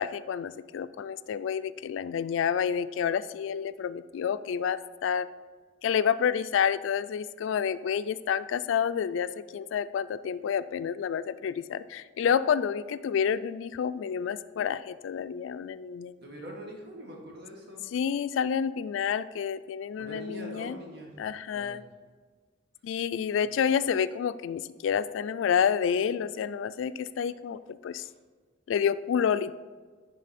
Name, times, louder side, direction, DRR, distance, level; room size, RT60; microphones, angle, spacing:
voice 1, 0.0-5.3 5.8-16.1 17.9-20.8 21.2-21.8 22.8-28.0 28.7-29.5, left 7 dB, 80° left, 15 dB, 0.3 m, -29 dB
voice 2, 16.2-17.9 20.0-21.9 23.4-23.5 27.9-28.1, equal, 60° right, 0 dB, 1.5 m, -44 dB
10.5 x 3.8 x 4.2 m, 1.5 s
head